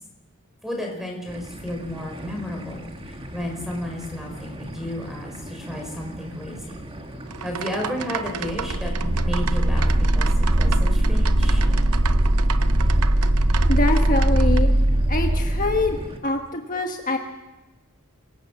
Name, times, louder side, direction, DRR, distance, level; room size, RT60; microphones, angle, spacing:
voice 1, 0.6-6.8 7.4-10.3 10.6-11.7, left 1 dB, ahead, 1 dB, 5.7 m, -32 dB
sound 1, 1.3-16.2, equal, 25° right, 1.9 m, -39 dB
sound 2, 7.3-14.6, right 7 dB, 85° right, 0.8 m, -34 dB
sound 3, 8.4-16.1, right 1 dB, 55° right, 1.4 m, -20 dB
voice 2, 13.7-14.7 15.1-17.2, left 2 dB, 40° left, 3 dB, 1.4 m, -24 dB
26.0 x 18.0 x 7.6 m, 1.2 s
head